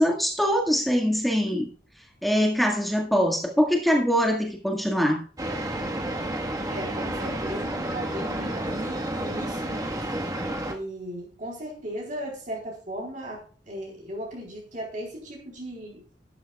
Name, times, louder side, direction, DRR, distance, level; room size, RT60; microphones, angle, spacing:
voice 1, 0.0-1.7 2.2-5.2, equal, ahead, 2 dB, 1.8 m, -23 dB
sound 1, 5.4-10.7, right 1 dB, 20° right, 1.5 m, -30 dB
voice 2, 6.7-10.0 10.7-16.1, equal, 45° right, -1 dB, 3.9 m, -37 dB
12.5 x 12.0 x 2.4 m, 0.40 s
head